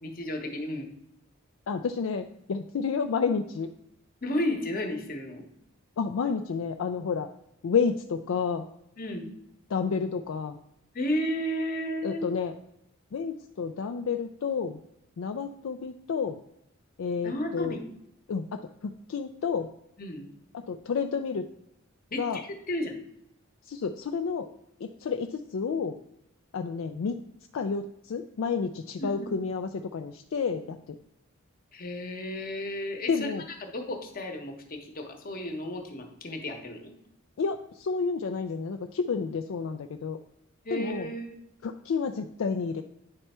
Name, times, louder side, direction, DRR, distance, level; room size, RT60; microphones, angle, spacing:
voice 1, 0.0-0.9 4.2-5.5 9.0-9.3 10.9-12.2 17.2-17.9 20.0-20.3 22.1-23.0 29.0-29.3 31.7-33.3 33.6-36.9 40.6-41.3, left 1 dB, 45° left, 4 dB, 1.0 m, -33 dB
voice 2, 1.7-3.7 6.0-7.3 7.6-8.7 9.7-10.6 12.0-12.5 13.1-14.8 15.2-16.4 17.0-17.8 18.3-19.7 20.5-21.5 22.2-22.4 23.7-24.5 24.8-26.0 26.5-27.2 27.5-31.0 33.1-33.4 37.4-40.2 40.7-41.1 41.6-42.8, left 5 dB, 70° left, 6 dB, 0.4 m, -30 dB
9.6 x 3.4 x 4.2 m, 0.78 s
head